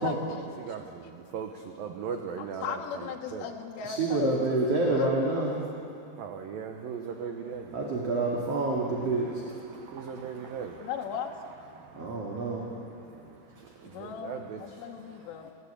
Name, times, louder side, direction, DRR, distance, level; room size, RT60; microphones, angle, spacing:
voice 1, 0.0-0.5 2.4-5.1 10.8-11.3 13.9-15.5, left 8 dB, 85° left, 0 dB, 3.8 m, -37 dB
voice 2, 0.6-3.5 6.2-7.8 9.1-10.9 11.7-12.4 12.9-14.9, right 7 dB, 75° right, 4 dB, 2.1 m, -39 dB
voice 3, 3.8-5.5 7.7-9.4 11.9-12.7, right 3 dB, 40° right, -3 dB, 2.5 m, -28 dB
29.5 x 15.5 x 8.6 m, 2.5 s
omnidirectional pair, 5.6 m